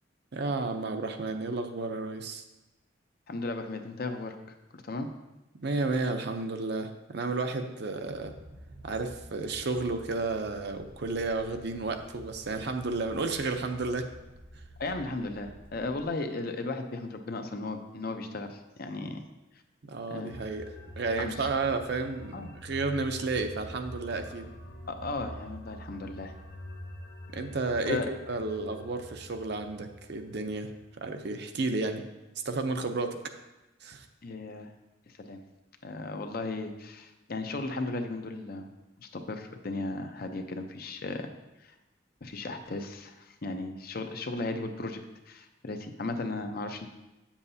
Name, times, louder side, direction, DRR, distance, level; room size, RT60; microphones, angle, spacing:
voice 1, 0.3-2.4 5.6-8.3 8.8-14.1 19.9-20.7 20.9-24.5 27.3-30.7 31.0-32.0 32.4-33.2 33.8-34.1, right 3 dB, 60° right, 6 dB, 0.6 m, -32 dB
voice 2, 3.3-4.4 4.7-5.1 14.8-19.2 20.1-20.3 21.2-21.5 22.3-22.5 24.9-26.3 27.9-28.1 34.2-34.7 35.2-35.4 35.8-38.7 39.0-41.3 42.2-46.9, left 2 dB, 55° left, 6 dB, 0.7 m, -35 dB
sound 1, 8.1-16.0, equal, 90° right, 1.4 m, -50 dB
sound 2, 20.3-31.1, equal, 75° left, 1.6 m, -45 dB
8.8 x 7.2 x 2.8 m, 1.0 s
head